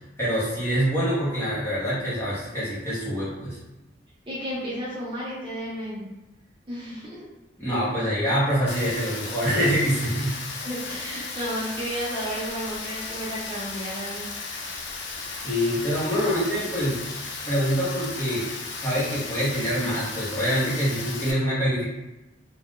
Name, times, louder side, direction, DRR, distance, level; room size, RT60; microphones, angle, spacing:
voice 1, 0.2-3.6 7.6-10.3 15.4-17.0 17.5-18.5 18.8-21.8, equal, 15° left, -9 dB, 1.0 m, -25 dB
voice 2, 4.3-6.1 6.7-7.2 10.6-14.6, equal, 25° right, -7 dB, 0.6 m, -33 dB
Rain, 8.7-21.3, left 4 dB, 65° left, 0.5 m, -35 dB
2.5 x 2.3 x 3.7 m, 1.0 s
head